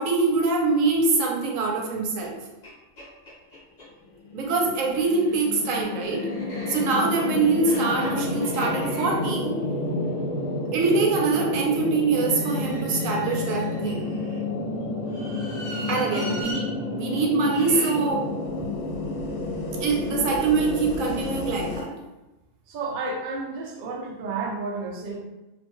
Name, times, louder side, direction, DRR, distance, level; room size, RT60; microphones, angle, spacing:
voice 1, 0.0-2.4 4.3-6.3 6.7-9.5 10.7-14.0 15.9-16.6 16.9-18.2 18.6-18.7 19.8-21.9, right 4 dB, 85° right, 0 dB, 1.0 m, -24 dB
sound 1, 2.2-2.3 2.6-2.7 3.0-3.9 4.8-11.0 12.1-14.4 15.0-16.6 17.4-17.9, equal, 40° left, 0.8 m, -40 dB
sound 2, 4.1-21.8, left 2 dB, 75° left, 0.9 m, -30 dB
voice 2, 22.7-25.2, right 3 dB, 65° right, 0 dB, 0.5 m, -32 dB
2.4 x 2.2 x 2.9 m, 1.0 s
omnidirectional pair, 1.3 m